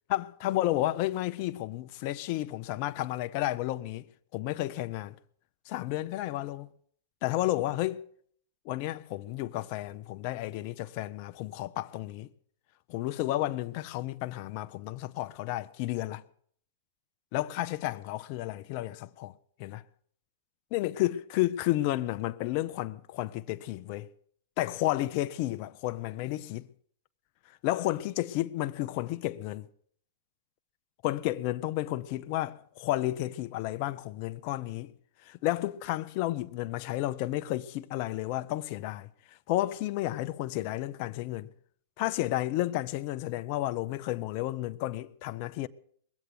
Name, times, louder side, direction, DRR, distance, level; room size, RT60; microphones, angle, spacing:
voice 1, 0.1-4.0 4.3-5.1 5.7-6.7 7.2-8.0 8.7-12.3 12.9-16.2 17.3-19.3 19.6-19.8 20.7-24.1 24.6-26.7 27.6-29.7 31.0-34.9 35.2-39.1 39.5-41.5 42.0-45.7, left 15 dB, 50° left, 0.7 m, -32 dB
21.0 x 8.1 x 7.8 m
hypercardioid pair, 120°, 0 cm